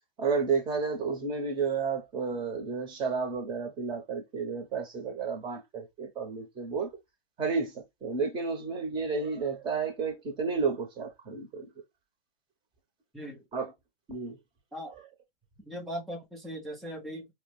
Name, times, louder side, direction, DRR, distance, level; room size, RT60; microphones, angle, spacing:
voice 1, 0.2-6.9 7.4-11.6 13.5-13.7 14.1-14.4, right 5 dB, 15° right, 0.9 m, -31 dB
voice 2, 15.6-17.3, equal, ahead, 0.5 m, -39 dB
4.7 x 2.1 x 3.1 m
figure-of-eight pair, 120°, 30 cm